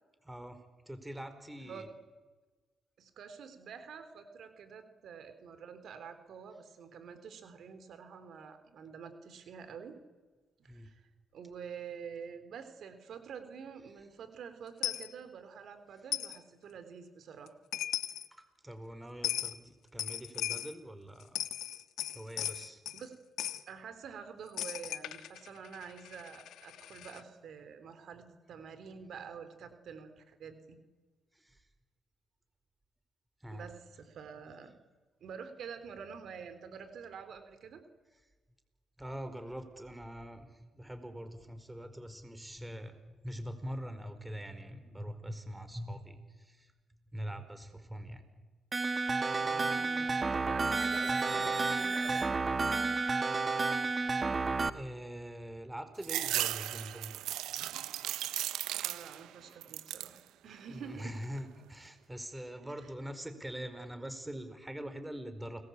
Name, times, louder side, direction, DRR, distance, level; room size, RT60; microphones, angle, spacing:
voice 1, 0.2-1.9 10.7-10.9 18.3-21.4 22.1-22.8 31.3-31.6 33.4-33.7 39.0-46.7 47.1-48.2 54.7-57.1 59.4-59.8 60.7-65.6, equal, 10° right, 10 dB, 4.7 m, -43 dB
voice 2, 3.0-10.0 10.6-17.5 22.9-23.1 23.7-30.8 33.5-34.7 35.2-37.8 49.4-52.6 58.8-61.2 62.6-62.7, right 6 dB, 70° right, 9 dB, 3.5 m, -48 dB
Coin (dropping), 14.8-15.1 16.1-16.4 17.5-17.6 17.7-18.3 19.2-19.6 20.0-20.7 21.2-23.0 23.4-23.6 24.6-27.2, left 12 dB, 80° left, 1.4 m, -37 dB
sound 1, 48.7-54.7, right 3 dB, 35° right, 1.6 m, -31 dB
sound 2, 56.0-59.3 59.6-60.2 60.7-61.4, right 13 dB, 85° right, 0.9 m, -36 dB
29.0 x 21.0 x 8.7 m, 1.3 s
cardioid pair, 70°, 0 cm